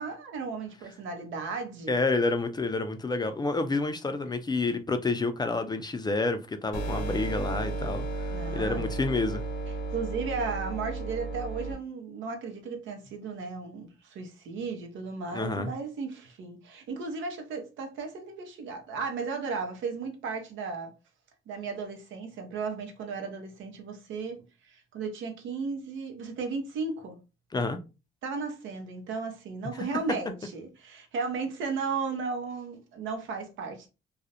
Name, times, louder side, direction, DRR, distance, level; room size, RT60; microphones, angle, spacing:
voice 1, 0.0-2.0 8.3-8.9 9.9-20.9 21.5-27.2 28.2-33.9, right 4 dB, 80° right, 0.7 m, -35 dB
voice 2, 1.9-8.3 8.5-9.4 15.3-15.7 27.5-27.8 29.7-29.8, left 3 dB, 20° left, 0.3 m, -29 dB
sound 1, 6.7-11.7, right 3 dB, 75° left, 0.8 m, -33 dB
2.4 x 2.0 x 2.7 m
cardioid pair, 90°, 20 cm